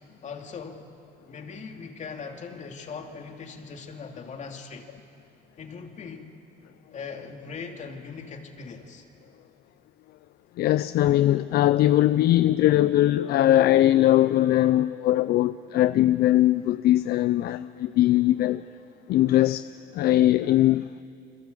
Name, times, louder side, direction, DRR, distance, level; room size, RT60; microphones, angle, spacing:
voice 1, 0.2-0.9 1.3-4.9 5.6-6.3 6.9-9.1, left 5 dB, 45° left, 2.8 m, -40 dB
voice 2, 10.6-18.6 19.1-19.7 19.9-21.0, left 14 dB, 65° left, 0.6 m, -20 dB
29.5 x 22.0 x 8.3 m
cardioid pair, 110°, 17 cm